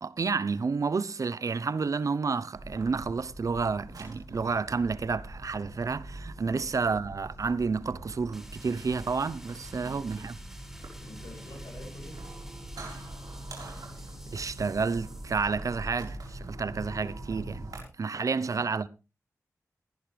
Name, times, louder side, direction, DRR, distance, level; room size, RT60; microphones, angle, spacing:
voice 1, 0.0-10.4 14.3-17.7 18.0-18.9, right 4 dB, 65° right, 0.7 m, -30 dB
sound 1, 2.5-17.8, right 1 dB, 85° right, 4.4 m, -43 dB
voice 2, 6.5-6.9 11.0-12.4 18.3-18.4, left 1 dB, 75° left, 8.0 m, -48 dB
sound 2, 8.3-15.5, equal, 5° right, 6.2 m, -52 dB
18.5 x 11.0 x 3.4 m
cardioid pair, 45°, 6 cm